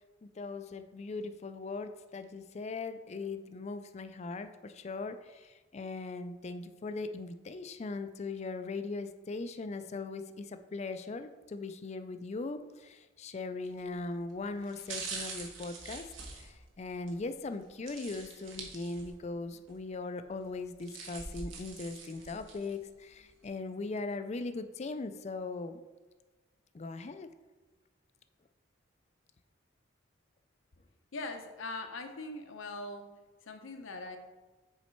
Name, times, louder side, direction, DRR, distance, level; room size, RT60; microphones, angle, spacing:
voice 1, 0.2-16.1 16.4-25.8 26.7-27.3, left 3 dB, 35° left, 10 dB, 0.4 m, -39 dB
sound 1, 13.7-13.9 14.6-17.2 17.9-19.3 19.7-19.8 20.6-22.8 23.2-23.3, right 4 dB, 70° right, 1.3 m, -44 dB
voice 2, 31.1-33.1 33.4-34.2, left 2 dB, 75° left, 6 dB, 0.7 m, -41 dB
7.0 x 4.1 x 4.4 m, 1.2 s
head